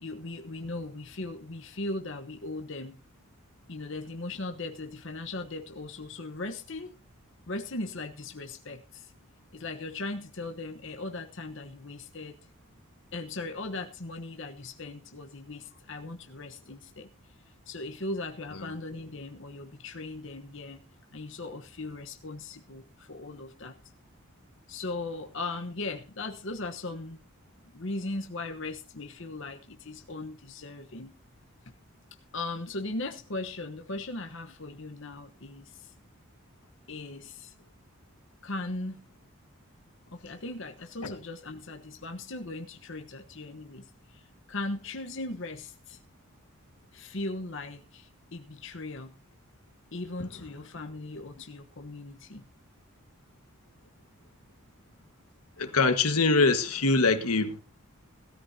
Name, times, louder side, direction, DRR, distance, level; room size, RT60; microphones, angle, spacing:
voice 1, 0.0-3.0 3.7-7.0 7.5-9.1 9.5-12.4 13.1-17.1 17.7-20.8 21.1-23.7 24.7-27.2 27.7-31.1 32.3-35.9 36.9-37.5 38.4-39.0 40.1-46.0 46.9-49.1 49.9-52.4, left 2 dB, 55° left, 1.2 m, -38 dB
voice 2, 55.6-57.6, left 3 dB, 85° left, 1.6 m, -23 dB
19.0 x 13.5 x 2.8 m
head